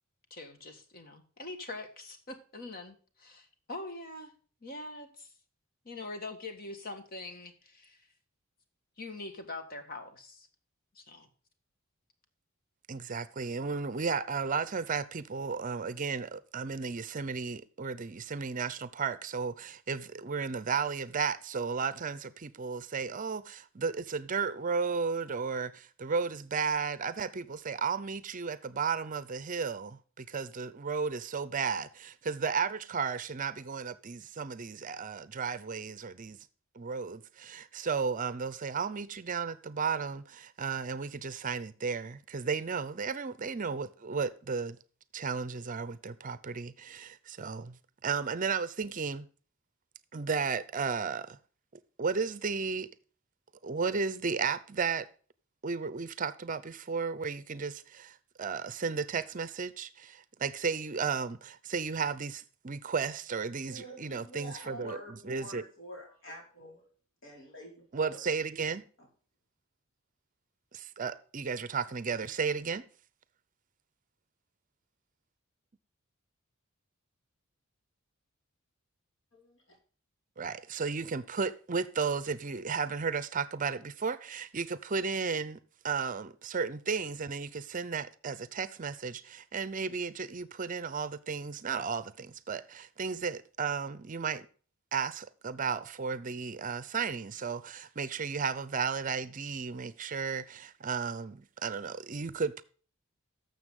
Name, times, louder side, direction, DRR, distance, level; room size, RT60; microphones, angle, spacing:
voice 1, 0.3-4.3 4.6-5.3 5.8-8.1 9.0-10.5 10.9-11.3, left 2 dB, 45° left, 1.6 m, -43 dB
voice 2, 12.9-36.4 36.7-44.8 45.1-47.8 48.0-49.3 50.1-51.4 52.0-52.9 53.6-55.1 55.6-65.0 65.2-65.6 67.9-68.9 70.7-72.9 80.4-94.5 94.9-102.6, right 5 dB, 40° right, 0.6 m, -34 dB
voice 3, 63.7-66.8 67.2-68.3 69.0-69.1 79.3-79.8, equal, 60° left, 5.1 m, -47 dB
12.5 x 7.1 x 3.7 m
head